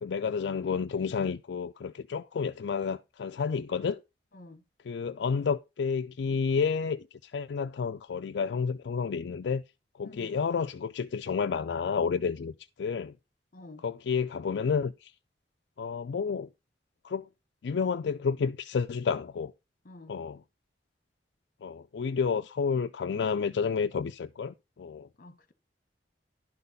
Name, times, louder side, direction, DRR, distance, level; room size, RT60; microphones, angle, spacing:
voice 1, 0.0-4.0 4.9-9.6 10.0-12.5 12.8-13.1 13.8-15.1 15.8-16.5 17.0-17.3 17.6-19.5 20.1-20.4 21.6-25.1, left 5 dB, 75° left, 0.4 m, -30 dB
voice 2, 4.3-4.6 10.0-10.4 13.5-13.8 19.8-20.2 25.2-25.5, left 2 dB, 50° left, 1.2 m, -49 dB
11.0 x 4.0 x 5.4 m
head